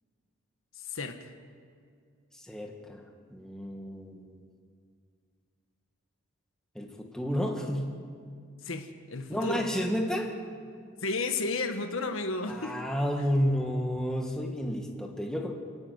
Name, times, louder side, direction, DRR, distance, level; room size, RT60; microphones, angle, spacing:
voice 1, 0.7-1.3 8.6-9.6 11.0-12.7, left 3 dB, 80° left, 6 dB, 1.5 m, -32 dB
voice 2, 2.3-4.4 6.8-7.9 9.3-10.3 12.5-15.5, equal, 5° left, 1 dB, 1.7 m, -31 dB
29.0 x 9.7 x 9.7 m, 2.2 s
head